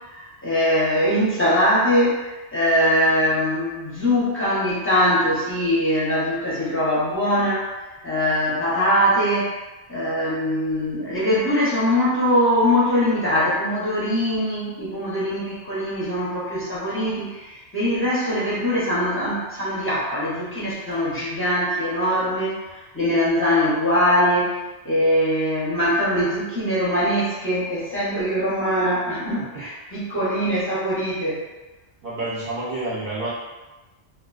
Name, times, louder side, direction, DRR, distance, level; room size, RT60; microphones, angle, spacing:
voice 1, 0.1-7.8 8.0-9.5 9.9-24.6 24.8-31.4, equal, 15° left, -9 dB, 0.5 m, -22 dB
voice 2, 32.0-33.3, right 2 dB, 50° right, -8 dB, 0.7 m, -28 dB
2.5 x 2.2 x 2.3 m, 1.1 s
omnidirectional pair, 1.2 m